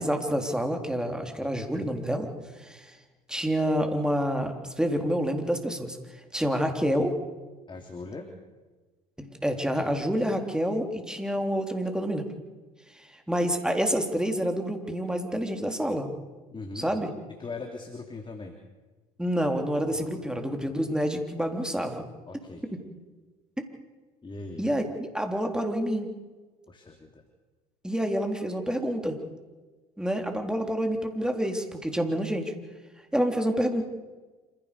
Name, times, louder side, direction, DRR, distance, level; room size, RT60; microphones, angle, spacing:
voice 1, 0.0-2.3 2.6-2.9 3.3-6.0 6.3-7.1 9.2-12.2 13.0-16.1 16.8-17.1 19.2-22.0 24.6-26.1 27.8-29.2 30.0-32.5 33.1-33.8, equal, 5° right, 4 dB, 3.7 m, -28 dB
voice 2, 7.7-8.3 16.5-16.9 17.4-18.6 19.9-20.1 22.3-22.6 24.2-24.6 26.7-27.2, left 3 dB, 25° left, 3 dB, 3.1 m, -40 dB
27.0 x 16.0 x 7.0 m, 1.3 s
hypercardioid pair, 65°, 19 cm